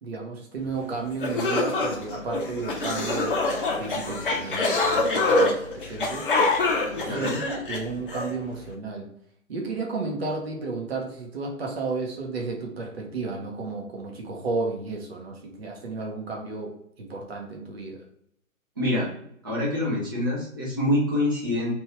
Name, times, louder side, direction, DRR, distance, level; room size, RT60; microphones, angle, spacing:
voice 1, 0.0-6.3 6.9-9.1 9.5-16.7 17.0-18.0, right 3 dB, 50° right, 0 dB, 0.9 m, -33 dB
sound 1, 0.8-0.9 1.2-8.3, left 2 dB, 40° left, 0.6 m, -25 dB
voice 2, 7.0-7.4 18.8-19.1 19.4-21.7, left 1 dB, 15° right, -6 dB, 0.5 m, -25 dB
3.0 x 2.6 x 3.1 m, 0.69 s
figure-of-eight pair, 135°, 41 cm